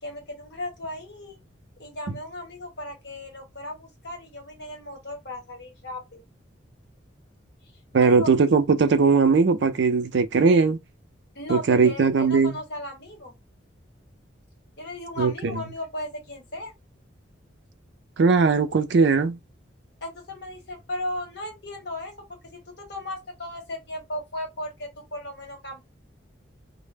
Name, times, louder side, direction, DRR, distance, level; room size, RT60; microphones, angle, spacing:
voice 1, 0.0-1.4 1.8-6.2 8.0-8.3 11.3-13.4 14.8-16.7 20.0-25.8, left 1 dB, 60° left, 1.1 m, -36 dB
voice 2, 7.9-10.8 11.5-12.6 15.2-15.6 18.2-19.4, right 4 dB, 65° right, 0.4 m, -19 dB
2.1 x 2.0 x 3.3 m
head